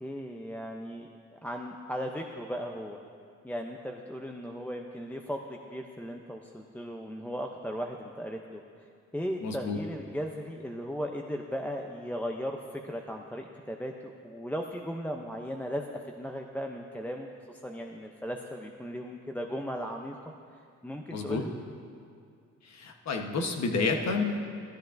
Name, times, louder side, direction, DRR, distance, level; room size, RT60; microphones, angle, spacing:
voice 1, 0.0-3.0 3.4-8.6 9.1-20.2 20.5-21.5, equal, 5° left, 2 dB, 0.6 m, -37 dB
voice 2, 9.4-9.8 21.1-21.4 22.6-24.4, left 4 dB, 65° left, 3 dB, 1.1 m, -30 dB
13.5 x 13.0 x 2.6 m, 2.3 s
cardioid pair, 80°, 30 cm